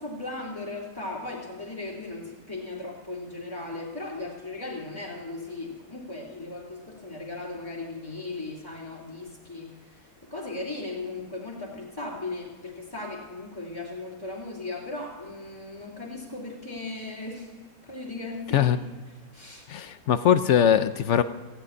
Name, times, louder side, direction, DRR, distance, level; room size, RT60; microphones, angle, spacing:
voice 1, 0.0-9.7 10.3-18.7 19.3-19.7, left 2 dB, 15° left, -6 dB, 2.2 m, -37 dB
voice 2, 19.7-21.2, left 9 dB, 65° left, 12 dB, 0.8 m, -21 dB
15.5 x 8.5 x 9.4 m, 1.4 s
omnidirectional pair, 1.6 m